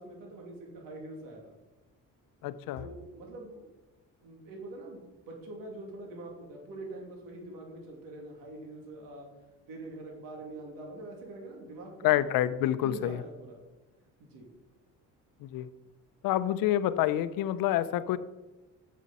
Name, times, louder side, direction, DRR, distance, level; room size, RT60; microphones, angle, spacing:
voice 1, 0.0-1.5 2.8-3.7 4.2-9.3 9.7-12.3 12.8-13.6 14.2-14.5, right 2 dB, 85° right, 0 dB, 2.8 m, -44 dB
voice 2, 2.4-2.8 12.0-13.2 15.4-15.7 16.2-18.2, left 12 dB, 80° left, 14 dB, 0.7 m, -27 dB
9.3 x 7.5 x 4.2 m, 1.1 s
cardioid pair, 120°, 33 cm